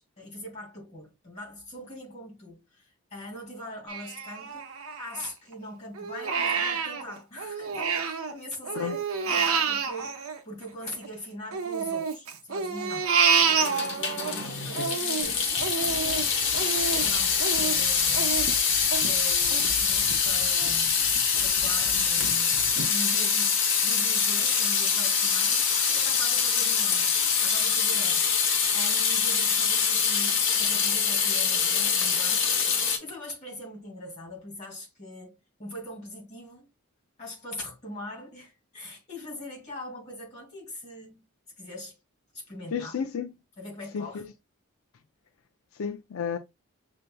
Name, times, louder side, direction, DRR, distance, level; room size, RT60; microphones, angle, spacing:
voice 1, 0.0-4.7 5.0-13.1 14.3-18.4 19.0-21.0 21.4-28.5 28.7-32.4 33.0-36.7 37.2-41.2 41.6-42.0 42.3-43.0 43.6-44.2, left 1 dB, 30° left, 2.4 m, -42 dB
Crying sobbing, 3.9-5.5 6.0-8.3 8.6-11.1 11.5-14.3 14.7-20.2 20.6-20.7 21.2-21.7 22.2-22.3 22.8-22.9, right 6 dB, 80° right, 0.8 m, -28 dB
Water tap faucet / Sink (filling or washing) / Drip, 13.4-33.0, left 6 dB, 55° left, 1.0 m, -24 dB
voice 2, 14.5-14.9 42.7-43.3 43.9-44.3 45.7-46.4, left 6 dB, 80° left, 0.4 m, -32 dB
sound 1, 15.2-22.8, left 1 dB, 25° right, 0.7 m, -45 dB
6.4 x 2.7 x 2.2 m
head